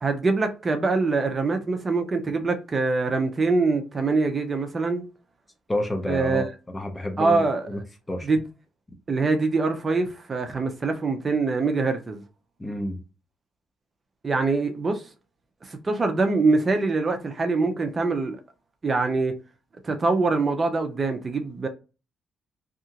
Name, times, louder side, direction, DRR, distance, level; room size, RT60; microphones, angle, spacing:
voice 1, 0.0-5.0 6.1-6.5 7.2-7.7 8.2-8.4 9.1-12.2 14.2-15.1 15.6-18.4 18.8-19.4 19.8-21.7, right 3 dB, 35° right, 0.5 m, -24 dB
voice 2, 5.7-7.8 8.1-8.3 12.6-13.0, left 1 dB, 15° left, 0.8 m, -29 dB
2.8 x 2.4 x 2.8 m
cardioid pair, 90°, 0 cm